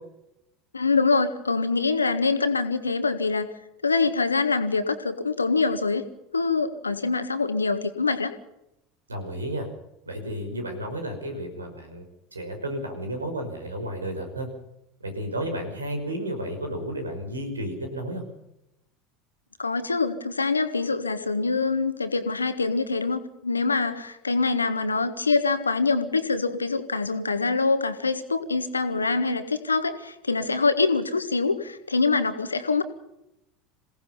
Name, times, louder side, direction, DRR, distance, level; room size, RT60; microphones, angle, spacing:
voice 1, 0.7-3.5 3.8-6.0 6.3-8.3 19.6-32.8, left 4 dB, 80° left, 10 dB, 1.7 m, -24 dB
voice 2, 9.1-9.7 10.1-12.0 12.3-14.5 15.0-18.2, right 1 dB, 80° right, 6 dB, 5.5 m, -32 dB
27.5 x 18.0 x 5.6 m, 0.85 s
figure-of-eight pair, 75°, 0 cm